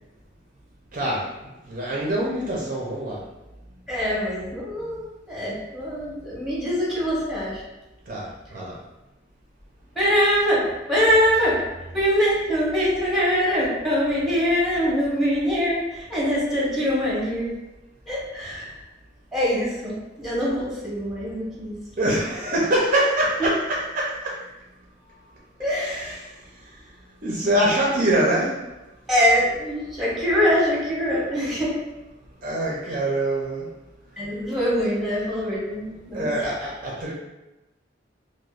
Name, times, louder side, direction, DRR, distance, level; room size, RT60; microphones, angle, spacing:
voice 1, 0.9-1.3 1.7-3.2 8.1-8.7 22.0-24.4 27.2-28.6 32.4-33.7 36.1-37.1, right 1 dB, 45° right, -3 dB, 0.6 m, -24 dB
voice 2, 3.9-7.6 9.9-11.7 11.9-17.5 18.1-18.8 19.3-21.8 23.4-23.5 25.6-26.1 29.1-31.8 32.8-33.0 34.2-36.3, equal, ahead, -7 dB, 1.2 m, -23 dB
4.8 x 2.1 x 2.4 m, 1.0 s
head